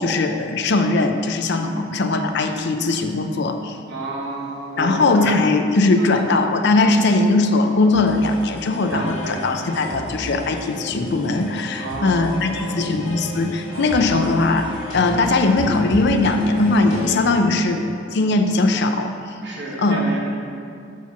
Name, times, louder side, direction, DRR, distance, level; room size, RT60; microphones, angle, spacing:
voice 1, 0.0-3.8 4.8-17.8 18.1-19.1 19.8-20.1, left 2 dB, 60° left, 6 dB, 0.5 m, -19 dB
voice 2, 3.9-5.4 6.0-6.4 8.2-8.3 8.8-9.4 9.8-10.0 11.8-13.1 13.7-14.2 17.2-17.8 18.6-18.8 19.4-20.2, right 2 dB, 60° right, -4 dB, 1.6 m, -32 dB
sound 1, 7.9-17.3, equal, 80° left, 1.7 m, -33 dB
7.1 x 4.6 x 5.8 m, 2.4 s
head